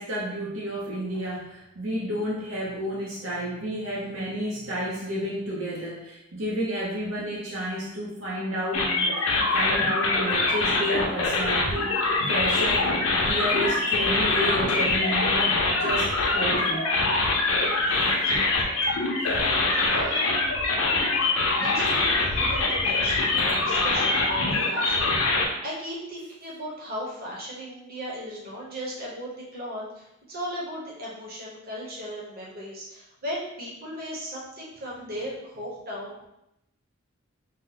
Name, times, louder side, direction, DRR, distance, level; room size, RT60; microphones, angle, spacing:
voice 1, 0.0-16.9 25.1-25.3 35.0-35.2, equal, 70° right, -6 dB, 0.7 m, -31 dB
sound 1, 8.7-25.5, left 3 dB, 85° left, 0.6 m, -24 dB
voice 2, 17.5-19.0 19.7-20.3 21.5-25.2 25.6-36.3, equal, 50° right, -4 dB, 0.9 m, -37 dB
2.8 x 2.1 x 3.8 m, 0.86 s
head